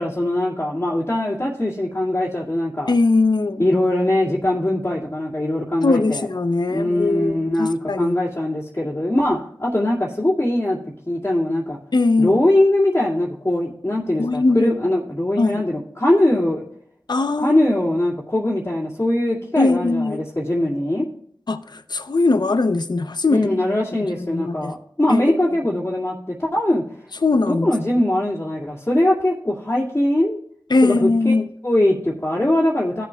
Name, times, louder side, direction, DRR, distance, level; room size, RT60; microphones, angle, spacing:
voice 1, 0.0-2.9 3.6-6.3 6.7-10.8 11.1-11.8 12.2-16.6 17.4-21.1 23.3-26.8 27.3-30.4 30.8-31.3 31.6-33.0, left 1 dB, 30° left, 2.3 m, -21 dB
voice 2, 2.9-3.6 5.8-8.1 11.9-12.4 14.2-14.7 15.4-15.6 17.1-17.6 19.6-20.2 21.5-23.5 24.2-24.7 25.1-25.4 27.2-27.7 30.7-31.4, left 3 dB, 60° left, 0.7 m, -20 dB
16.0 x 6.9 x 2.4 m
wide cardioid pair, 45°, 8 cm